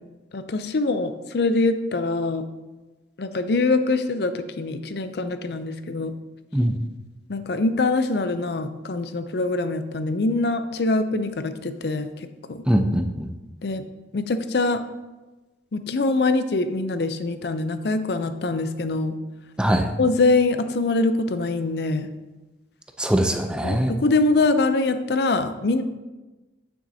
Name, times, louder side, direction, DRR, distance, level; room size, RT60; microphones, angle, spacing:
voice 1, 0.3-2.4 3.2-6.1 7.3-12.6 13.6-13.8 14.1-14.8 15.7-19.2 20.0-22.1 23.6-25.8, left 3 dB, 60° left, 10 dB, 0.5 m, -23 dB
voice 2, 12.7-13.3 19.6-19.9 23.0-23.9, equal, 5° right, 6 dB, 0.4 m, -21 dB
8.7 x 7.1 x 2.7 m, 1.2 s
head